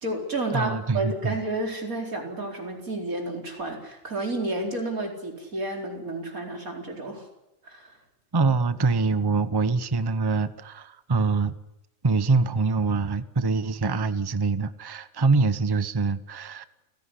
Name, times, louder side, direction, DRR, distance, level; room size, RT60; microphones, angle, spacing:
voice 1, 0.0-7.3 7.6-7.9, right 2 dB, 90° right, 1 dB, 5.0 m, -31 dB
voice 2, 0.5-1.4 8.3-11.5 12.0-16.6, right 4 dB, 20° right, 13 dB, 0.8 m, -24 dB
29.0 x 17.5 x 9.9 m, 0.91 s
omnidirectional pair, 1.4 m